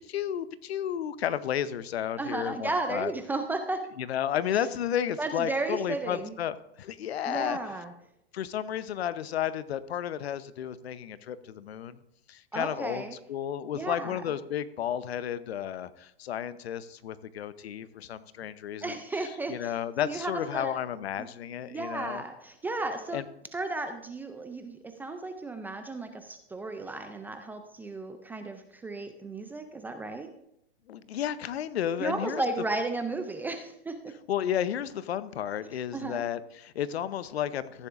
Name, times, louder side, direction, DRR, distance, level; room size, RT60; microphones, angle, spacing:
voice 1, 0.1-3.1 4.0-7.6 8.3-12.0 12.3-22.2 23.1-23.2 30.9-32.4 34.3-37.9, left 10 dB, 80° left, 15 dB, 0.8 m, -32 dB
voice 2, 2.2-3.8 5.2-6.3 7.3-7.9 12.5-13.2 13.7-14.2 18.8-19.7 20.0-20.8 21.2-21.3 21.7-23.2 23.5-30.3 32.0-34.2 35.9-36.2, right 2 dB, 5° right, 7 dB, 0.3 m, -34 dB
14.5 x 10.0 x 2.5 m, 0.78 s
hypercardioid pair, 130°, 31 cm